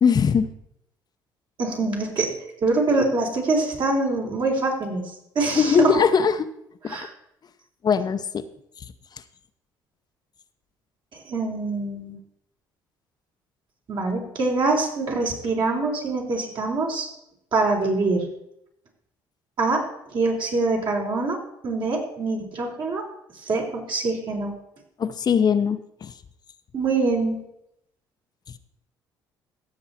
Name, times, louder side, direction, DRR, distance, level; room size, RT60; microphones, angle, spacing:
voice 1, 0.0-0.5 5.5-6.5 6.8-7.0 7.8-8.4 25.0-26.1, left 6 dB, 45° left, 9 dB, 0.8 m, -20 dB
voice 2, 1.6-2.3 2.6-5.1 5.4-6.0 6.9-7.1 11.1-12.2 13.9-17.1 17.5-18.3 19.6-19.8 20.1-21.4 21.6-23.0 23.4-24.5 26.7-27.4, right 3 dB, 55° right, -1 dB, 4.0 m, -24 dB
16.0 x 7.0 x 4.3 m, 0.79 s
hypercardioid pair, 60°, 10 cm